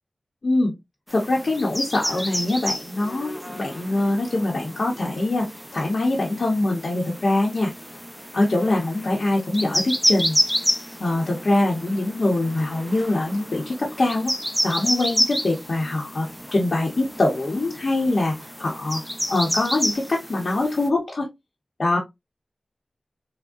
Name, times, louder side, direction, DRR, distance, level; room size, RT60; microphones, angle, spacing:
voice 1, 1.1-7.7 8.3-10.4 11.0-14.3 14.6-19.0 19.3-21.3 21.8-22.0, left 2 dB, 65° left, -3 dB, 0.7 m, -23 dB
sound 1, 1.1-20.9, equal, ahead, 0.5 m, -30 dB
3.5 x 2.0 x 2.3 m, 0.20 s
wide cardioid pair, 55°, 0 cm